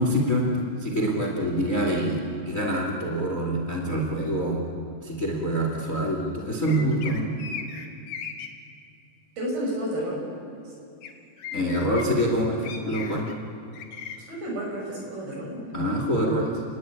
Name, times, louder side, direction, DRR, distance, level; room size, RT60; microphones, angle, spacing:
voice 1, 0.0-4.6 5.0-7.2 11.5-13.3 15.7-16.6, equal, 20° left, 0 dB, 2.7 m, -25 dB
sound 1, 6.6-8.5 11.0-11.1 11.4-12.0 12.6-13.3 13.7-14.2, left 7 dB, 60° left, 3.6 m, -37 dB
voice 2, 9.4-10.3 14.3-16.0, equal, 60° right, -1 dB, 8.1 m, -31 dB
30.0 x 21.0 x 9.1 m, 2.4 s
omnidirectional pair, 4.9 m